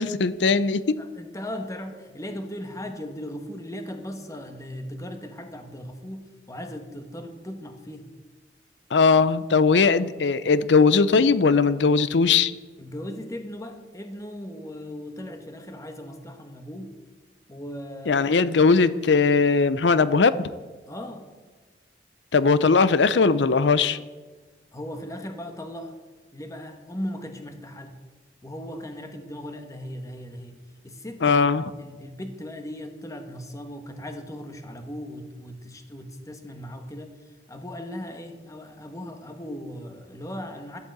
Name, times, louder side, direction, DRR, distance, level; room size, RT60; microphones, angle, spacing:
voice 1, 0.0-1.1 8.9-12.5 18.1-20.5 22.3-24.0 31.2-31.6, left 4 dB, 85° left, 16 dB, 0.6 m, -19 dB
voice 2, 1.0-8.1 12.8-17.0 17.5-18.3 20.9-21.3 24.7-26.0 26.3-27.9 28.4-30.5 30.8-40.8, equal, 20° left, 6 dB, 1.2 m, -38 dB
11.5 x 8.4 x 7.9 m, 1.3 s
head